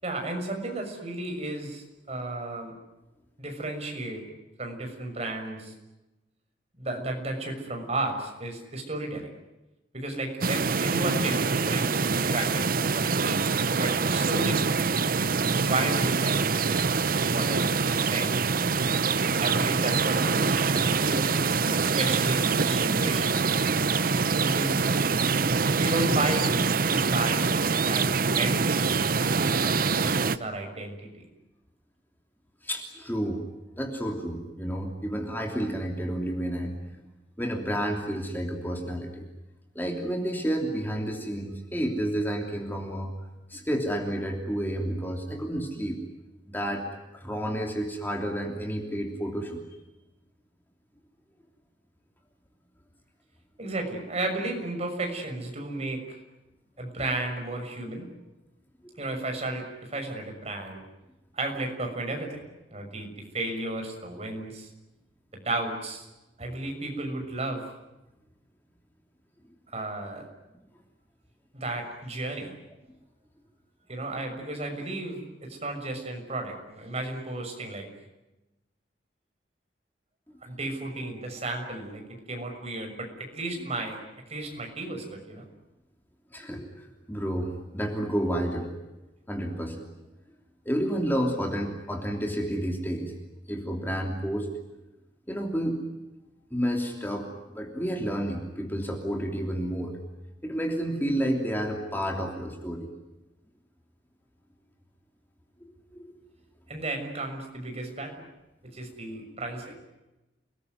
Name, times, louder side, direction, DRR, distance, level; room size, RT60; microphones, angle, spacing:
voice 1, 0.0-2.7 3.4-4.2 4.6-5.7 6.8-9.3 9.9-12.6 12.9-13.5 13.8-14.6 15.5-18.3 19.4-21.2 21.7-23.4 24.4-24.8 25.7-31.2 53.6-56.2 56.8-58.1 59.0-60.8 61.3-62.4 62.7-64.7 65.3-66.1 66.4-67.6 69.7-70.2 71.5-72.5 73.9-77.9 80.4-84.0 84.3-85.5 106.7-108.2 108.7-109.7, right 2 dB, 35° right, 3 dB, 6.4 m, -33 dB
sound 1, 10.4-30.4, right 4 dB, 55° right, 0.9 m, -25 dB
voice 2, 32.6-33.5 33.7-36.9 37.4-39.3 39.7-43.1 43.5-46.2 46.5-46.8 47.1-49.6 84.5-84.6 86.3-88.7 89.3-89.8 90.6-93.1 93.5-94.6 95.3-95.8 96.5-100.0 100.4-102.9 105.6-106.1, equal, 10° left, 2 dB, 3.1 m, -30 dB
29.0 x 20.0 x 9.4 m, 1.0 s
head